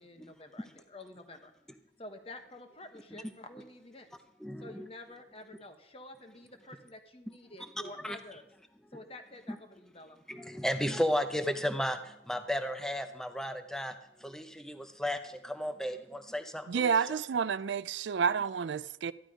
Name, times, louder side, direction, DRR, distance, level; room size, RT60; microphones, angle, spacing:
voice 1, 0.0-1.5 2.0-4.1 4.6-8.4 8.9-10.2, left 2 dB, 30° left, 1.4 m, -49 dB
voice 2, 4.4-4.9 8.0-8.2 10.3-17.2, equal, 5° left, 0.7 m, -34 dB
voice 3, 16.7-19.1, right 6 dB, 75° right, 0.4 m, -30 dB
14.0 x 11.5 x 5.0 m
head